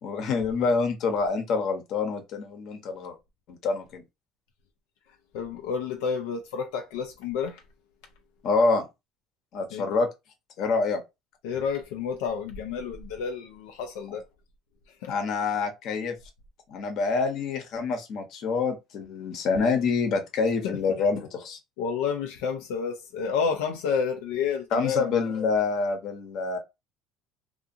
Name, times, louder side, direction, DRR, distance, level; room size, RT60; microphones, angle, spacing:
voice 1, 0.0-3.2 3.5-4.0 8.4-8.9 9.5-10.1 10.6-11.0 15.1-16.2 16.7-21.6 24.7-26.6, left 4 dB, 55° left, 0.9 m, -26 dB
voice 2, 5.3-7.6 9.7-9.8 11.4-14.2 14.9-15.1 20.6-21.0 21.8-25.5, left 6 dB, 90° left, 0.4 m, -30 dB
2.5 x 2.4 x 2.6 m
cardioid pair, 130°, 0 cm